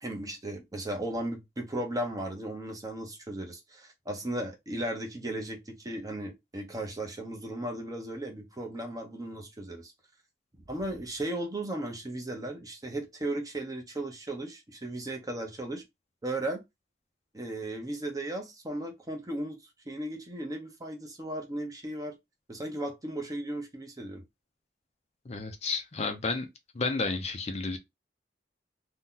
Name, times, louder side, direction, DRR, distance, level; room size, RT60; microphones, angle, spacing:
voice 1, 0.0-9.9 10.7-15.8 16.2-16.6 17.3-19.6 19.9-22.2 22.5-24.2, right 1 dB, 20° right, 0.7 m, -36 dB
voice 2, 25.3-26.5 26.7-27.8, left 3 dB, 40° left, 0.5 m, -31 dB
2.8 x 2.2 x 3.7 m
head